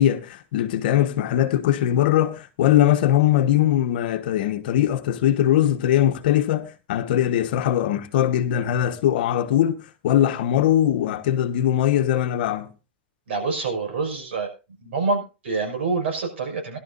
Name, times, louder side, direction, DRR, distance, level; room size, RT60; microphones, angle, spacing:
voice 1, 0.0-9.8 10.0-12.7, left 11 dB, 55° left, 1.3 m, -21 dB
voice 2, 13.3-14.5 14.8-16.8, right 4 dB, 80° right, 6.0 m, -26 dB
20.0 x 12.0 x 2.6 m
supercardioid pair, 170°, 6 cm